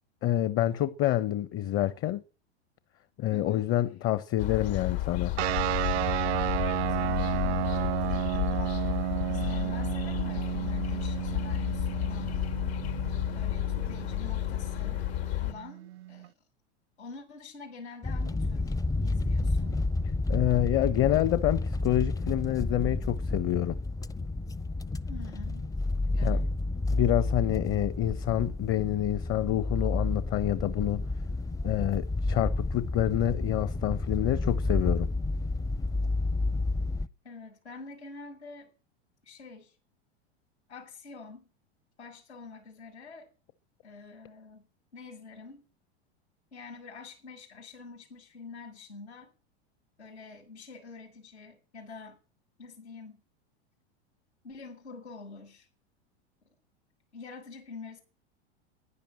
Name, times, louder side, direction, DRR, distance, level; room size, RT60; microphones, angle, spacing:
voice 1, 0.2-2.2 3.2-5.4 20.3-23.8 26.1-26.4 26.9-31.0 31.6-35.1, left 13 dB, 40° left, 1.1 m, -27 dB
voice 2, 3.3-3.7 7.0-8.8 9.2-12.4 13.3-15.1 15.4-16.3 17.0-18.8 19.0-19.8 25.0-25.7 26.1-26.5 37.2-38.7 39.2-39.8 40.7-41.5 42.0-43.3 43.8-44.7 44.9-45.7 46.5-49.3 50.0-52.2 52.6-53.2 54.4-55.7 57.1-58.0, left 4 dB, 85° left, 6.1 m, -46 dB
sound 1, 4.4-15.5, left 14 dB, 70° left, 2.6 m, -32 dB
sound 2, 5.4-16.3, right 15 dB, 75° right, 0.6 m, -33 dB
sound 3, 18.0-37.1, left 2 dB, 10° left, 0.6 m, -30 dB
15.5 x 10.5 x 6.5 m
hypercardioid pair, 95°, 33 cm